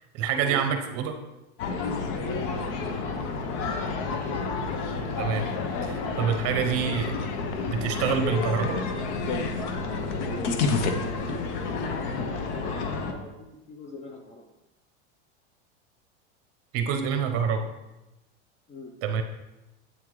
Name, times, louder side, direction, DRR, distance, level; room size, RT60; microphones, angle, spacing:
voice 1, 0.1-1.1 5.2-5.5 5.8-7.2 7.7-8.8 16.7-17.7 19.0-19.2, right 7 dB, 40° right, 6 dB, 0.9 m, -26 dB
sound 1, 1.6-13.1, left 4 dB, 65° left, 1.0 m, -30 dB
voice 2, 2.2-3.1 10.2-14.5 18.7-18.9, left 2 dB, 20° left, 4 dB, 0.6 m, -40 dB
8.3 x 3.7 x 4.7 m, 0.98 s
supercardioid pair, 135°, 36 cm